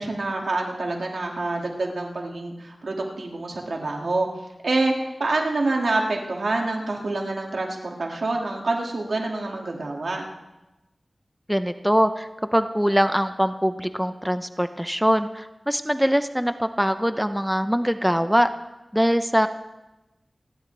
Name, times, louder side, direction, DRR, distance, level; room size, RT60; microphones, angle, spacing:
voice 1, 0.0-4.3 4.6-10.2, right 2 dB, 85° right, 0 dB, 2.3 m, -26 dB
voice 2, 11.5-18.5 18.9-19.5, equal, 5° right, 9 dB, 0.8 m, -22 dB
29.0 x 11.0 x 3.4 m, 0.99 s
wide cardioid pair, 45°, 0 cm